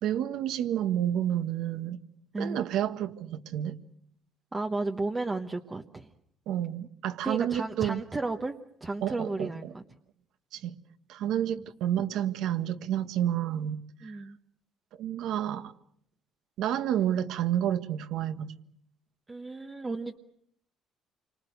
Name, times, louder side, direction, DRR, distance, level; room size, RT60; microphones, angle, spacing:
voice 1, 0.0-2.0 2.4-3.7 6.5-8.0 9.0-9.7 10.5-10.8 11.1-14.2 15.0-15.7 16.6-18.5, right 10 dB, 65° right, 9 dB, 1.6 m, -30 dB
voice 2, 4.5-6.1 7.2-8.5 8.8-9.8 11.5-11.6 14.0-14.4 19.3-20.2, right 3 dB, 15° right, 4 dB, 1.1 m, -33 dB
29.5 x 25.0 x 6.6 m, 0.69 s
cardioid pair, 170°, 0 cm